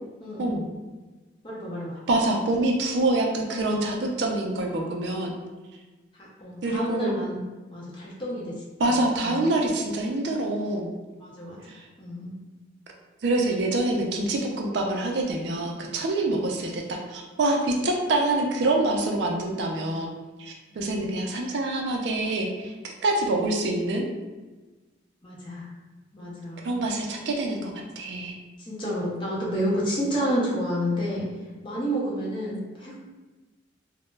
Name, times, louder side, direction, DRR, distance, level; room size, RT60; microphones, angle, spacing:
voice 1, 1.4-2.0 6.1-7.4 7.7-9.5 11.2-11.6 12.0-12.3 20.7-20.8 25.2-25.7 26.1-26.8 28.6-31.2 31.6-33.0, equal, 25° left, -5 dB, 0.5 m, -30 dB
voice 2, 2.1-5.3 6.6-7.1 8.8-11.0 11.7-11.9 13.2-20.1 20.4-24.0 26.6-28.4, right 2 dB, 60° right, 1 dB, 0.3 m, -26 dB
2.2 x 2.0 x 3.1 m, 1.2 s
head